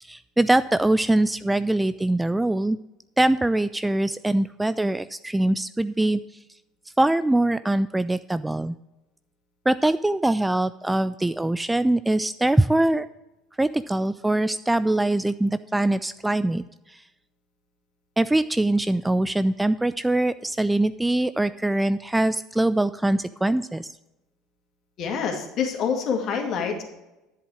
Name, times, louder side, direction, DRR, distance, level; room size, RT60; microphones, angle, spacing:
voice 1, 0.0-2.8 3.2-6.2 7.0-8.7 9.7-13.1 13.6-17.0 18.2-23.9, right 1 dB, 10° right, 14 dB, 0.3 m, -23 dB
voice 2, 25.0-26.8, left 6 dB, 50° left, 2 dB, 2.3 m, -26 dB
10.5 x 7.9 x 4.8 m, 0.98 s
figure-of-eight pair, 65°, 0 cm